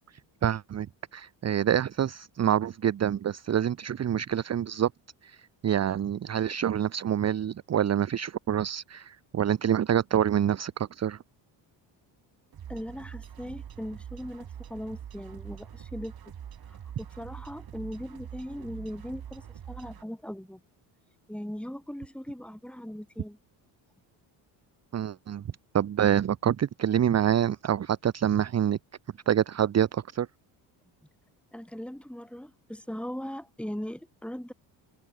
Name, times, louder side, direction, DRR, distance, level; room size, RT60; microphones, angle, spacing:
voice 1, 0.4-0.9 1.1-4.9 5.2-11.2 24.9-25.4 25.7-28.8 29.3-30.3, right 9 dB, 35° right, 0.8 m, -26 dB
sound 1, 12.5-20.0, right 9 dB, 50° right, 4.3 m, -44 dB
voice 2, 12.7-16.1 16.7-20.6 21.3-23.4 31.5-34.5, equal, ahead, 7.0 m, -39 dB
supercardioid pair, 85°, 46 cm